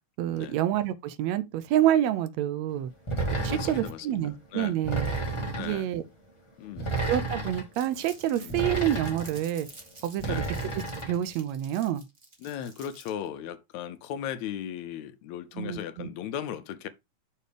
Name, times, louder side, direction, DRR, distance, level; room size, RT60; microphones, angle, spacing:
voice 1, 0.2-2.9 3.4-5.1 5.6-6.0 7.0-9.7 10.0-10.4 10.7-12.0 15.6-16.1, right 12 dB, 75° right, 1.8 m, -28 dB
sound 1, 3.1-3.9 4.8-5.8 6.8-7.6 8.5-9.4 10.2-11.2, right 3 dB, 25° left, 0.6 m, -31 dB
voice 2, 3.4-4.2 4.5-4.8 5.5-5.9 6.6-6.9 8.4-8.6 10.2-10.5 12.4-16.9, left 10 dB, 75° left, 1.9 m, -37 dB
Crumpling crinkling, 7.7-13.3, right 2 dB, 30° right, 0.9 m, -51 dB
6.7 x 3.2 x 4.9 m
omnidirectional pair, 3.4 m